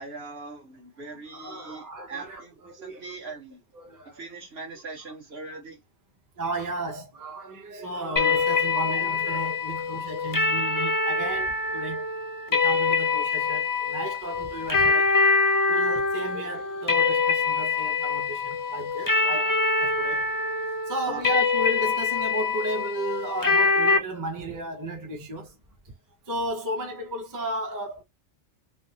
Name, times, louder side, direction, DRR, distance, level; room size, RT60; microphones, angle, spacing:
voice 1, 0.0-3.6 4.1-5.8 21.0-21.2, right 3 dB, 60° right, 1.4 m, -40 dB
voice 2, 1.1-3.3 3.7-4.3 6.4-12.0 12.5-15.1 15.7-20.3 20.9-25.6 26.3-28.0, right 1 dB, 20° right, 0.6 m, -34 dB
sound 1, 8.2-24.0, left 4 dB, 25° left, 0.4 m, -24 dB
3.3 x 2.1 x 2.7 m
omnidirectional pair, 1.2 m